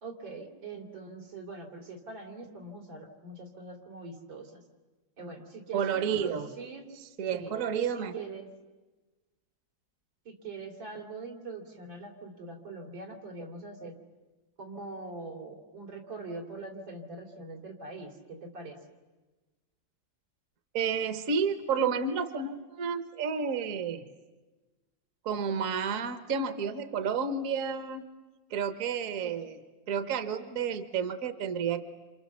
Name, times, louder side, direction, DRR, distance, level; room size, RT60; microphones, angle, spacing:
voice 1, 0.0-4.6 5.2-6.8 7.3-7.5 7.9-8.5 10.3-14.0 14.6-18.8 29.2-29.3, right 3 dB, 85° right, 1 dB, 3.9 m, -43 dB
voice 2, 5.7-6.5 7.2-8.1 20.7-24.1 25.2-28.1 28.5-29.6 29.9-31.8, right 6 dB, 50° right, 10 dB, 1.4 m, -31 dB
28.0 x 27.5 x 7.3 m, 1.2 s
omnidirectional pair, 2.0 m